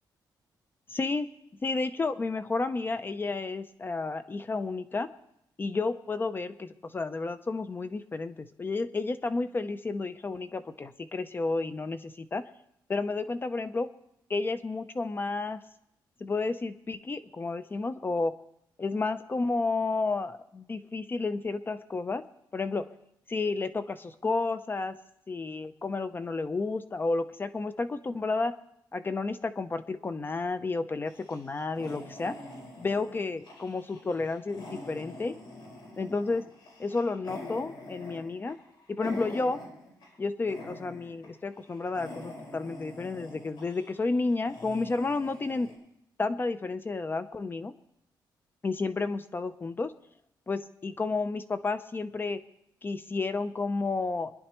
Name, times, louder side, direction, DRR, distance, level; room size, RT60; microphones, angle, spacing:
voice 1, 0.9-1.3 1.6-5.1 5.6-12.4 12.9-13.9 14.3-15.6 16.2-18.3 18.8-22.2 22.5-22.9 23.3-25.0 25.3-28.5 28.9-32.4 32.8-35.4 36.0-36.4 36.8-38.6 38.9-39.6 40.2-45.7 46.2-47.7 48.6-49.9 50.5-52.4 52.8-54.3, left 3 dB, 25° left, 11 dB, 0.6 m, -31 dB
sound 1, 31.1-40.2 40.5-41.3 41.6-45.8, left 1 dB, 65° left, 5.1 m, -45 dB
25.0 x 10.5 x 3.0 m, 0.79 s
cardioid pair, 125°, 8 cm